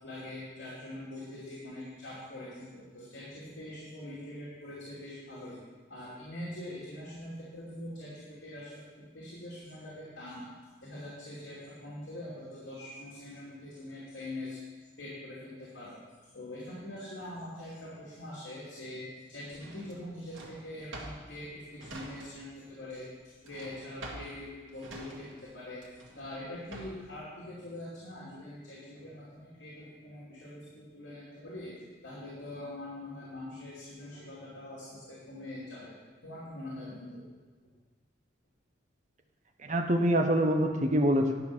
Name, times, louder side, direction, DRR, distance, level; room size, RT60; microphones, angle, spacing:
voice 1, 0.0-5.6 5.9-10.5 10.8-14.6 15.0-16.0 16.3-25.9 26.1-31.7 32.0-35.9 36.2-37.2, left 1 dB, 75° left, -8 dB, 2.8 m, -43 dB
Drawer open or close, 19.5-22.6 22.9-27.1, right 1 dB, 85° right, 1.8 m, -47 dB
voice 2, 39.6-41.4, equal, 40° right, 4 dB, 0.9 m, -25 dB
11.0 x 5.4 x 6.2 m, 1.4 s
head